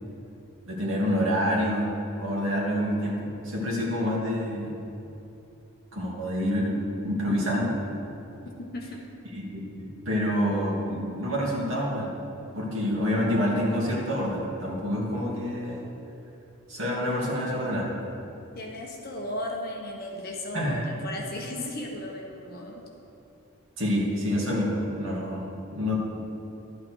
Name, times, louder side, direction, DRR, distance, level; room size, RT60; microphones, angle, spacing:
voice 1, 0.7-1.9 2.2-4.8 5.9-6.8 7.0-7.7 9.3-12.1 12.5-15.8 16.7-17.9 20.5-20.8 23.8-26.0, equal, 60° right, -5 dB, 2.6 m, -27 dB
voice 2, 8.6-9.0 18.5-22.8, left 1 dB, 40° left, -1 dB, 1.3 m, -35 dB
12.0 x 8.6 x 4.7 m, 2.8 s
head